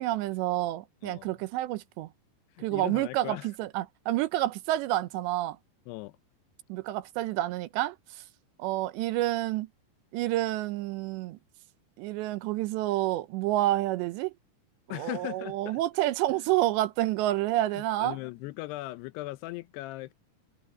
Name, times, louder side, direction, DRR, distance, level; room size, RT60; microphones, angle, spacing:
voice 1, 0.0-2.1 2.6-5.6 6.7-8.0 8.6-9.7 10.1-11.4 12.0-14.3 14.9-18.2, right 15 dB, 85° right, 3.1 m, -29 dB
voice 2, 1.0-1.3 2.5-3.5 5.9-6.2 14.9-15.8 17.7-20.1, left 18 dB, 80° left, 2.6 m, -39 dB
omnidirectional pair, 5.0 m